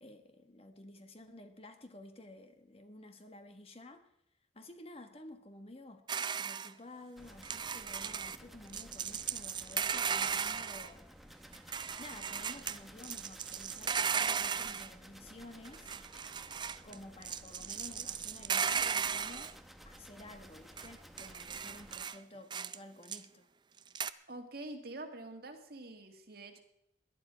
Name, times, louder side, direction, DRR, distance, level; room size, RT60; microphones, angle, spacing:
voice 1, 0.0-4.0 4.5-6.0 6.4-11.0 12.0-15.9 16.8-19.6 19.8-23.5, left 1 dB, 30° left, 7 dB, 1.3 m, -52 dB
sound 1, 6.1-6.7 7.4-8.4 8.7-10.9 11.5-12.8 13.0-14.9 15.7-16.9 17.2-19.5 20.8-20.9 21.2-22.2 22.5-22.8 23.1-23.2 23.9-24.1, right 7 dB, 25° right, 0.4 m, -36 dB
sound 2, 7.2-22.0, equal, ahead, 0.9 m, -55 dB
voice 2, 24.3-26.6, right 2 dB, 55° right, 5 dB, 1.9 m, -46 dB
18.0 x 11.5 x 5.0 m, 0.79 s
head